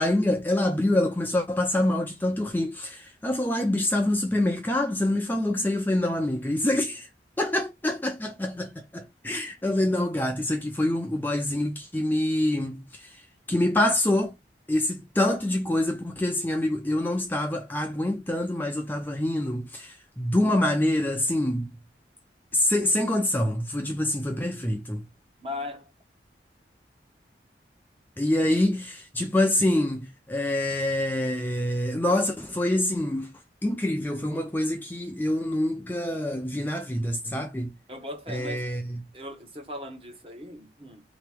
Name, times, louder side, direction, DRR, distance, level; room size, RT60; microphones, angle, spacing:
voice 1, 0.0-7.1 7.4-13.2 13.5-14.3 14.7-21.7 22.5-25.0 28.2-33.3 33.6-37.7 38.3-39.0, left 1 dB, 10° left, 0.4 m, -26 dB
voice 2, 25.4-25.9 37.9-38.7 39.1-41.0, left 1 dB, 30° right, 1.0 m, -38 dB
3.8 x 3.0 x 3.4 m
head